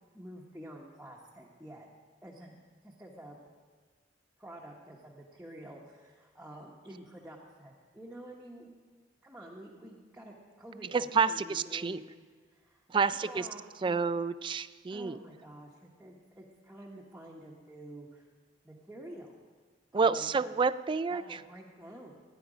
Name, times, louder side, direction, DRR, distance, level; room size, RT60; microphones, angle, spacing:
voice 1, 0.1-1.9 2.2-3.4 4.4-8.7 9.2-12.2 12.5-12.8 13.1-14.0 14.9-18.3 18.6-19.4 19.9-20.4 21.1-22.2, right 1 dB, 5° right, -4 dB, 1.1 m, -49 dB
voice 2, 10.9-12.0 12.9-13.5 13.8-15.2 19.9-21.4, right 5 dB, 25° right, 15 dB, 0.3 m, -29 dB
16.0 x 10.0 x 5.0 m, 1.4 s
head